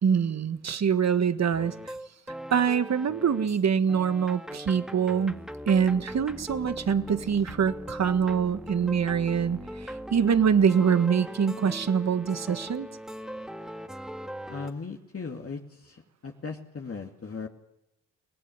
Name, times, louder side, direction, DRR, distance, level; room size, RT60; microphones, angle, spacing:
voice 1, 0.0-1.9 2.5-5.3 5.7-12.9, right 7 dB, 50° right, 12 dB, 1.6 m, -24 dB
sound 1, 1.6-3.6 3.9-14.7, equal, ahead, 2.0 m, -40 dB
voice 2, 14.5-17.5, left 4 dB, 40° left, 1 dB, 2.5 m, -38 dB
23.5 x 18.0 x 9.4 m, 0.87 s
hypercardioid pair, 45°, 34 cm